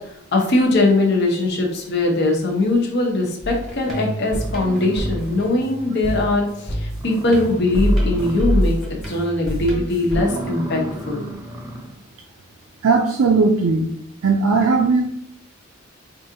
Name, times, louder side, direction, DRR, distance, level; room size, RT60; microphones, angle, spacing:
voice 1, 0.1-8.8 9.1-11.3, left 2 dB, 55° left, 0 dB, 0.8 m, -20 dB
sound 1, 3.4-10.2, equal, ahead, 1.1 m, -25 dB
sound 2, 4.4-5.8 6.1-6.2 6.6-6.7 6.9-8.9 9.2-9.5 10.0-12.0, right 1 dB, 15° right, 0.5 m, -34 dB
voice 2, 12.8-13.8 14.2-15.0, right 4 dB, 85° right, 2 dB, 0.4 m, -17 dB
4.7 x 2.5 x 2.7 m, 0.74 s
head